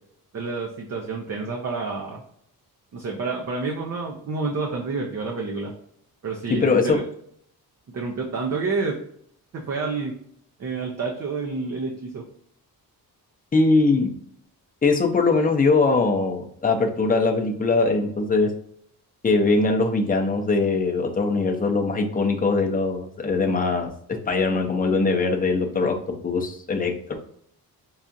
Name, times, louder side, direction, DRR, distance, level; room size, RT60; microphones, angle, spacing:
voice 1, 0.3-2.2 2.9-5.7 6.2-7.0 7.9-9.0 9.5-10.1 10.6-12.2, right 4 dB, 45° right, 0 dB, 0.6 m, -29 dB
voice 2, 6.5-7.0 13.5-14.1 14.8-18.5 19.2-27.1, left 3 dB, 20° left, 2 dB, 0.6 m, -21 dB
5.6 x 2.4 x 2.5 m, 0.66 s
wide cardioid pair, 150°, 38 cm